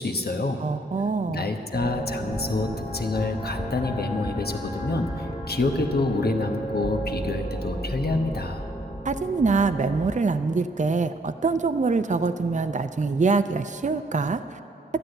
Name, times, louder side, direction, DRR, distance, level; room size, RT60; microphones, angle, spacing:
voice 1, 0.0-0.7 1.3-8.6, left 2 dB, 65° left, 4 dB, 1.1 m, -27 dB
voice 2, 0.6-1.5 9.1-14.6, right 4 dB, 45° right, 9 dB, 0.5 m, -24 dB
sound 1, 1.7-10.2, right 1 dB, 35° left, 2.0 m, -33 dB
13.0 x 10.0 x 7.8 m, 2.7 s
wide cardioid pair, 40°, 17 cm